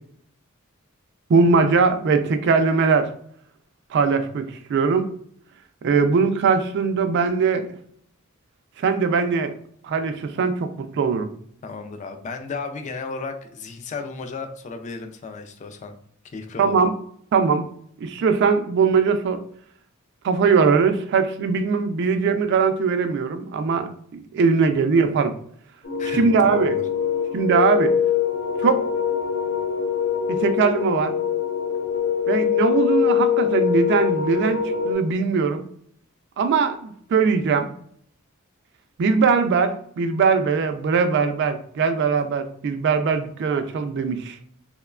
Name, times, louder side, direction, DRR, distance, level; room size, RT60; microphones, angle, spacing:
voice 1, 1.3-3.1 3.9-5.0 5.8-7.7 8.8-9.5 9.8-11.3 16.6-16.9 17.3-17.6 18.0-19.4 20.2-25.3 26.1-26.8 27.3-27.9 28.6-28.8 30.3-31.1 32.3-35.6 36.4-37.7 39.0-44.4, right 5 dB, 55° right, 8 dB, 0.3 m, -20 dB
voice 2, 11.6-15.9 16.3-16.8 26.0-26.8, left 4 dB, 35° left, 6 dB, 0.3 m, -34 dB
sound 1, 25.8-34.9, left 8 dB, 55° left, 0.8 m, -23 dB
2.9 x 2.1 x 2.3 m, 0.63 s
head